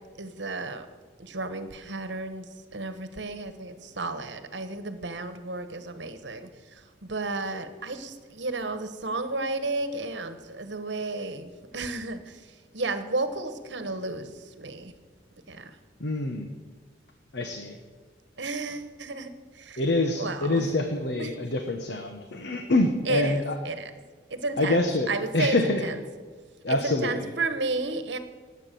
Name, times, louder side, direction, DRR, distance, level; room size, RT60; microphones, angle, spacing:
voice 1, 0.2-0.9 1.2-14.9 15.5-15.8 18.4-19.3 19.5-19.8 20.2-20.6 21.2-21.3 23.1-23.9 24.3-26.0 26.7-28.2, right 3 dB, 70° right, 10 dB, 1.3 m, -33 dB
voice 2, 16.0-16.5 17.3-17.8 19.8-23.5 24.6-25.8 26.6-27.3, left 2 dB, 65° left, 5 dB, 1.2 m, -26 dB
19.0 x 8.3 x 6.9 m, 1.5 s
head